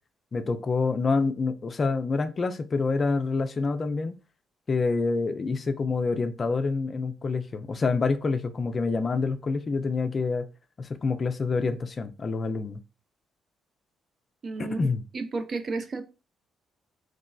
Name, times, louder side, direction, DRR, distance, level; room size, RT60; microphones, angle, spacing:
voice 1, 0.3-4.2 4.7-10.5 10.8-12.8 14.6-15.0, left 4 dB, 35° left, 0.3 m, -27 dB
voice 2, 14.4-14.9 15.1-16.0, right 3 dB, 40° right, 0.4 m, -32 dB
2.9 x 2.3 x 2.2 m
figure-of-eight pair, 40°, 0 cm